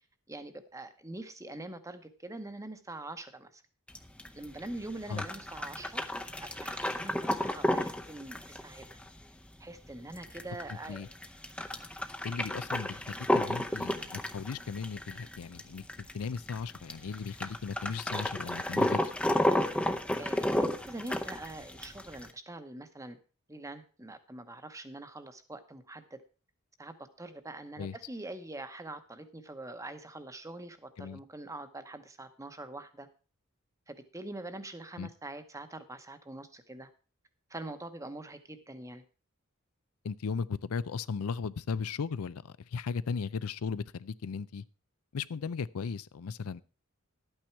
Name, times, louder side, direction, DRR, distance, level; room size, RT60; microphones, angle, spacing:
voice 1, 0.3-3.6 4.3-6.0 6.4-8.9 9.6-11.1 20.2-23.2 23.5-26.2 26.8-33.1 33.9-36.9 37.5-39.0, right 2 dB, 15° right, 10 dB, 0.9 m, -44 dB
sound 1, 3.9-22.3, left 1 dB, 5° left, 0.6 m, -32 dB
voice 2, 12.2-19.1 27.8-27.9 31.0-31.2 35.0-35.1 40.0-44.6 45.1-46.6, left 5 dB, 90° left, 17 dB, 0.5 m, -36 dB
12.0 x 9.0 x 4.5 m, 0.36 s
head